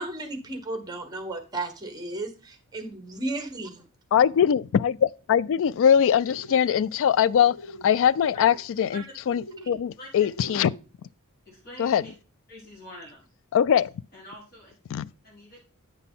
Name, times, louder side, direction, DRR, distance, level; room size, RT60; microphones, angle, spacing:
voice 1, 0.0-3.8, right 2 dB, 20° right, 1.3 m, -34 dB
voice 2, 4.1-7.6 7.8-10.7 11.8-12.0 13.5-13.9 14.9-15.1, left 8 dB, 60° left, 0.3 m, -22 dB
sound 1, 6.1-6.6 7.4-7.9 8.1-8.6 9.3-9.8 10.3-10.8, left 1 dB, 80° left, 3.7 m, -43 dB
voice 3, 11.4-12.1 12.5-13.2 14.1-14.7 15.2-15.6, equal, 45° left, 3.6 m, -45 dB
9.0 x 5.8 x 3.7 m
head